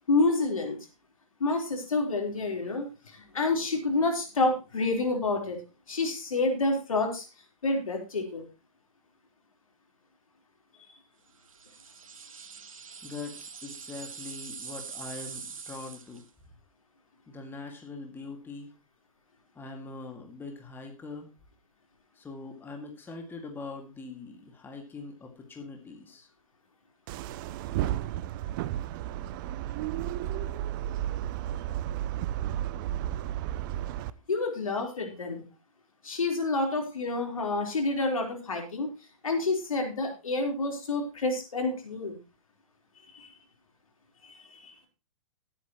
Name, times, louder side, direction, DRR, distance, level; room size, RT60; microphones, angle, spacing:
voice 1, 0.1-0.8 1.4-5.6 5.9-7.3 7.6-8.4 34.3-35.4 36.0-38.9 39.2-42.2 43.1-43.3 44.2-44.8, left 3 dB, 80° left, 2 dB, 4.1 m, -28 dB
sound 1, 11.5-16.3, right 6 dB, 75° right, 1.7 m, -43 dB
voice 2, 13.0-16.2 17.3-18.7 19.6-21.3 22.1-26.3, left 3 dB, 10° left, 3 dB, 2.2 m, -42 dB
sound 2, 27.1-34.1, right 12 dB, 40° right, 0.6 m, -33 dB
18.0 x 8.8 x 3.1 m, 0.28 s
hypercardioid pair, 120°, 17 cm